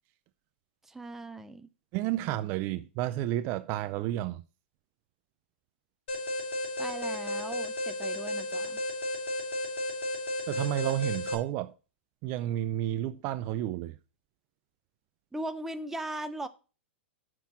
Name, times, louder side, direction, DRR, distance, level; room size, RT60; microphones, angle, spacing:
voice 1, 0.8-1.7 6.8-8.8 15.3-16.5, right 1 dB, 5° right, 0.7 m, -38 dB
voice 2, 1.9-4.4 10.5-11.7 12.2-14.0, right 13 dB, 40° right, 0.5 m, -31 dB
Alarm, 6.1-11.3, left 1 dB, 80° left, 2.7 m, -33 dB
6.9 x 6.1 x 6.1 m
hypercardioid pair, 135°, 6 cm